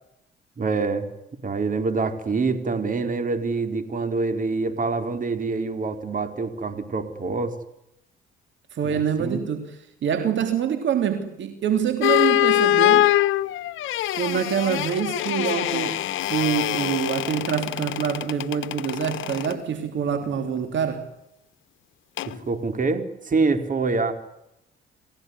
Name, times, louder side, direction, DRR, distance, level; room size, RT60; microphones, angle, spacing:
voice 1, 0.6-1.0 1.4-7.6 8.8-9.4 22.2-24.1, right 4 dB, 40° right, 4.4 m, -26 dB
voice 2, 8.7-13.1 14.1-21.0, right 7 dB, 70° right, 3.1 m, -26 dB
sound 1, 12.0-19.6 22.2-22.4, left 14 dB, 80° left, 1.3 m, -24 dB
29.0 x 16.5 x 9.9 m
cardioid pair, 90°, 20 cm